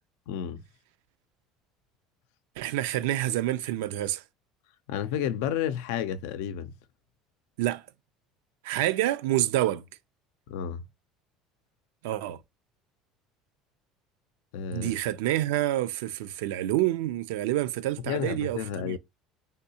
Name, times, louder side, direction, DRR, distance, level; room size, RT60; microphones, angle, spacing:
voice 1, 0.3-0.6 4.9-6.7 10.5-10.8 14.5-14.9 18.1-19.0, left 9 dB, 80° left, 0.4 m, -31 dB
voice 2, 2.6-4.2 7.6-7.8 8.6-9.9 12.0-12.4 14.7-19.0, right 14 dB, 90° right, 0.4 m, -28 dB
3.5 x 2.7 x 2.8 m
supercardioid pair, 115°, 0 cm